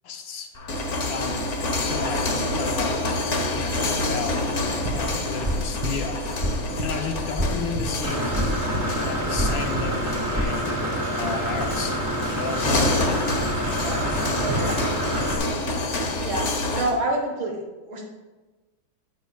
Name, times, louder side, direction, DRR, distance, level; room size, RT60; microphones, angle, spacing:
voice 1, 0.0-0.5 1.1-1.5 1.8-3.0 3.5-4.4 4.8-6.3 6.8-8.3 9.0-12.0 12.3-13.0, left 5 dB, 70° left, 4 dB, 1.6 m, -33 dB
sound 1, 0.5-17.0, left 2 dB, 45° left, 1.1 m, -28 dB
sound 2, 4.8-10.4, equal, 20° right, 1.0 m, -30 dB
Engine / Mechanisms, 8.0-15.4, right 1 dB, 50° right, 0.3 m, -27 dB
voice 2, 16.7-17.5 17.9-18.0, right 1 dB, 75° right, -1 dB, 2.0 m, -27 dB
9.5 x 8.6 x 2.4 m, 1.2 s
omnidirectional pair, 2.2 m